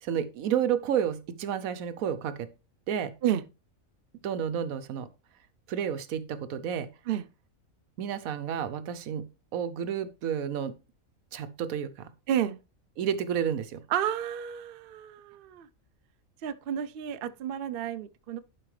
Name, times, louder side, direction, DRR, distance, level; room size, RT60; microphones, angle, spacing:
voice 1, 0.0-2.5 2.9-3.1 4.2-5.1 5.7-6.9 8.0-9.2 9.5-10.7 11.3-12.1 13.0-13.8, right 8 dB, 85° right, 1.1 m, -30 dB
voice 2, 12.3-12.6 13.9-15.7 16.4-18.4, right 10 dB, 65° right, 0.6 m, -31 dB
11.0 x 4.8 x 3.2 m
omnidirectional pair, 1.4 m